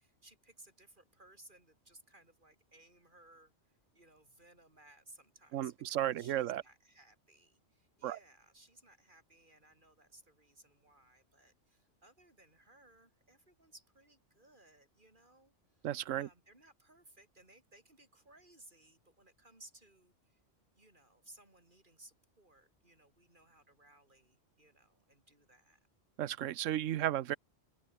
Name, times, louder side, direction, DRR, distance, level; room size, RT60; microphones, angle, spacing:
voice 1, 0.0-15.9 16.2-20.4 20.7-25.9, right 1 dB, 40° right, 6.4 m, -62 dB
voice 2, 5.5-6.6 8.0-8.2 15.8-16.3 26.2-27.4, right 12 dB, 80° right, 1.1 m, -34 dB
open air
omnidirectional pair, 1.3 m